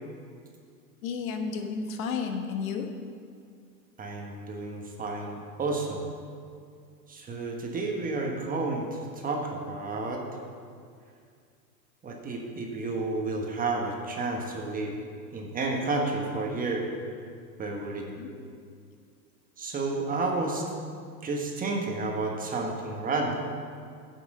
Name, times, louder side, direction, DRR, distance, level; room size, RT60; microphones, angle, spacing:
voice 1, 1.0-2.9 18.1-18.3, left 5 dB, 55° left, 4 dB, 1.3 m, -32 dB
voice 2, 4.0-6.0 7.1-10.2 12.0-14.9 15.3-16.9 17.6-18.1 19.6-20.6 21.2-23.3, right 3 dB, 15° right, 1 dB, 1.2 m, -31 dB
9.7 x 6.1 x 7.3 m, 2.2 s
hypercardioid pair, 125°, 49 cm